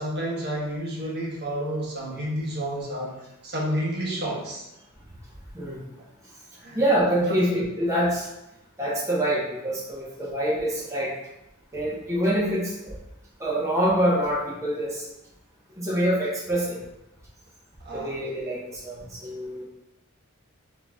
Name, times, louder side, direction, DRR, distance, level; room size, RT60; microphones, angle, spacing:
voice 1, 0.0-3.1 3.4-4.7 6.6-6.8 7.2-7.5 17.8-18.2, right 1 dB, 50° right, -3 dB, 1.1 m, -30 dB
voice 2, 6.7-8.3 8.8-11.1 11.7-12.9 13.4-15.0 15.8-16.8 17.9-19.6, right 1 dB, 15° right, -6 dB, 1.0 m, -25 dB
3.9 x 3.8 x 3.5 m, 0.89 s
head